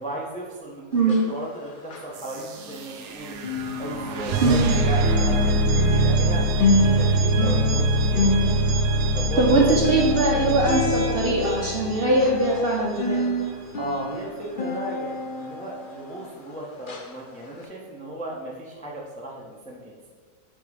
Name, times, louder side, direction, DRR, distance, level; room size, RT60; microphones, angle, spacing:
voice 1, 0.0-3.3 3.8-5.5 5.8-8.3 9.1-9.6 13.8-20.1, right 1 dB, 10° left, -3 dB, 0.5 m, -35 dB
sound 1, 0.9-3.1 3.4-16.5 16.9-17.1 17.6-17.7, left 2 dB, 70° left, 0.4 m, -29 dB
sound 2, 2.1-13.0, right 2 dB, 75° right, 1.1 m, -24 dB
voice 2, 4.4-4.7 9.4-13.3, right 2 dB, 45° right, -3 dB, 0.8 m, -21 dB
8.4 x 3.0 x 4.8 m, 1.5 s
omnidirectional pair, 1.9 m